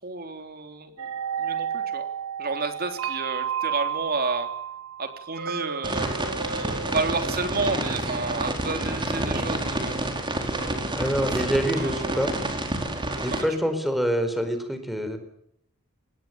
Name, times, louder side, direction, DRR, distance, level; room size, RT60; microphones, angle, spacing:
voice 1, 0.0-1.1 1.4-2.1 2.4-4.5 5.0-10.0 10.5-10.9 11.2-12.3 13.3-13.5, right 3 dB, 45° right, 6 dB, 3.5 m, -31 dB
sound 1, 1.0-9.0, right 8 dB, 65° right, 1.4 m, -33 dB
sound 2, 5.8-13.4, right 1 dB, 20° right, 4.7 m, -29 dB
voice 2, 10.9-12.3 13.2-15.2, equal, ahead, 8 dB, 4.5 m, -26 dB
25.5 x 20.5 x 8.9 m, 0.71 s
head